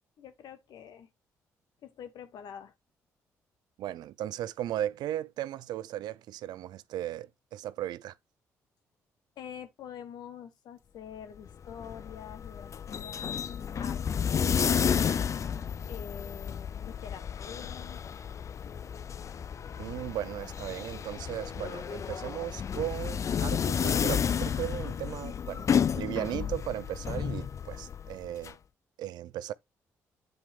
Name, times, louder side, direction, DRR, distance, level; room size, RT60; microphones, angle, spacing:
voice 1, 0.2-1.1 1.8-2.7 9.4-13.5 13.7-15.0 15.9-18.0, left 8 dB, 70° left, 1.3 m, -46 dB
voice 2, 3.8-8.1 19.8-25.7 25.9-28.6 29.0-29.5, right 12 dB, 70° right, 0.5 m, -36 dB
sound 1, 11.5-28.5, left 7 dB, 45° left, 0.4 m, -32 dB
9.2 x 4.4 x 3.7 m
hypercardioid pair, 50°, 7 cm